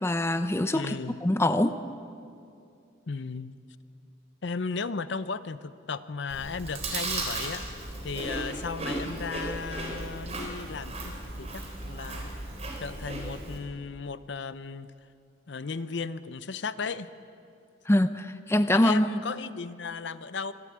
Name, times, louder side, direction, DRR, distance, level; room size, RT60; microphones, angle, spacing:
voice 1, 0.0-1.0 1.2-1.7 17.9-19.1, left 1 dB, 15° left, 10 dB, 0.5 m, -24 dB
voice 2, 0.7-1.2 3.1-3.6 4.4-7.6 8.0-11.1 11.4-12.3 12.8-14.9 15.5-17.1 18.7-20.5, left 4 dB, 65° left, 14 dB, 0.6 m, -35 dB
Chewing mastication, 6.3-13.6, right 2 dB, 35° right, 3.8 m, -35 dB
25.0 x 12.5 x 8.7 m, 2.5 s
head